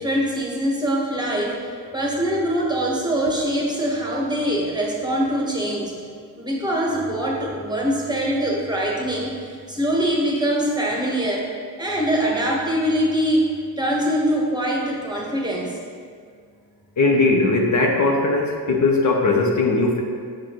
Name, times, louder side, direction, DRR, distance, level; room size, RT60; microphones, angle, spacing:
voice 1, 0.0-6.0 6.4-11.5 11.8-13.5 13.8-15.8, equal, 10° right, -2 dB, 1.3 m, -23 dB
voice 2, 17.0-20.0, left 3 dB, 45° left, 0 dB, 0.8 m, -19 dB
6.2 x 6.1 x 3.0 m, 2.2 s
cardioid pair, 70°, 42 cm